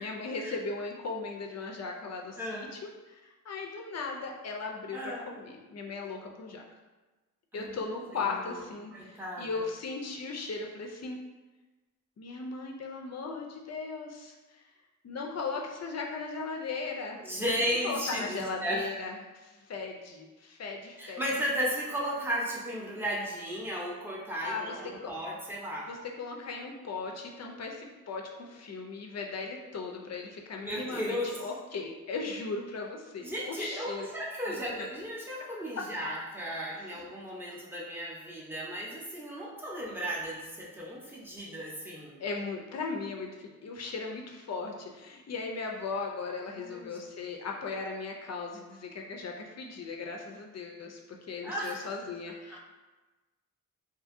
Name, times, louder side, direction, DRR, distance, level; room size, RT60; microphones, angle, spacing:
voice 1, 0.0-2.7 3.1-3.2 3.5-6.6 7.5-11.2 12.2-14.4 15.0-17.2 17.8-21.2 24.4-24.7 25.0-25.1 25.9-34.1 34.5-34.9 36.8-36.9 42.2-51.0 51.3-52.6, left 4 dB, 50° left, 1 dB, 0.4 m, -37 dB
voice 2, 2.4-2.7 4.9-5.3 7.5-7.8 8.2-8.6 8.9-9.6 17.2-18.9 21.0-25.9 30.6-31.5 33.2-42.2 46.6-47.0 51.4-52.0 52.5-52.6, equal, 5° right, -5 dB, 0.6 m, -35 dB
2.6 x 2.6 x 2.5 m, 1.2 s
wide cardioid pair, 90°, 34 cm